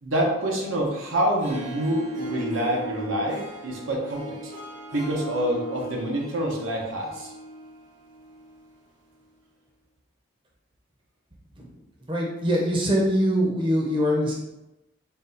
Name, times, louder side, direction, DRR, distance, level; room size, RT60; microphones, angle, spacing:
voice 1, 0.0-4.5 4.9-7.3, right 1 dB, 90° right, -1 dB, 0.9 m, -27 dB
Harp, 1.2-8.7, equal, 70° right, 1.5 m, -38 dB
voice 2, 12.1-14.3, equal, 25° right, -2 dB, 0.6 m, -23 dB
3.9 x 2.3 x 3.9 m, 0.95 s
head